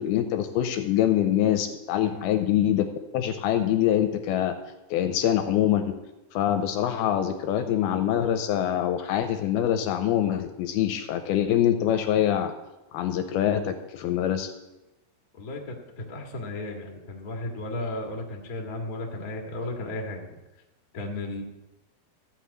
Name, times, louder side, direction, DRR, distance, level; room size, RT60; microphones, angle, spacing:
voice 1, 0.0-2.9 3.1-4.6 4.9-6.0 6.3-12.5 12.9-14.5, left 11 dB, 80° left, 8 dB, 2.4 m, -24 dB
voice 2, 15.3-20.3 20.9-21.4, left 2 dB, 45° left, 1 dB, 1.1 m, -34 dB
14.0 x 5.9 x 8.3 m, 1.0 s
omnidirectional pair, 4.7 m